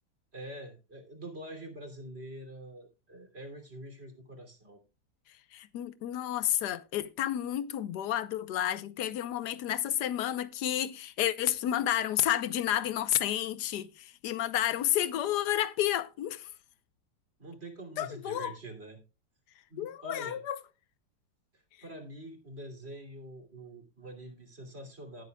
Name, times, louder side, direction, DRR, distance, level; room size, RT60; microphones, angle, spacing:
voice 1, 0.3-4.8 17.4-19.0 19.7-20.4 21.5-25.2, right 1 dB, 30° right, 3.1 m, -45 dB
voice 2, 5.5-16.5 18.0-18.5 19.8-20.6, left 12 dB, 65° left, 1.3 m, -31 dB
18.5 x 7.9 x 2.3 m
omnidirectional pair, 2.0 m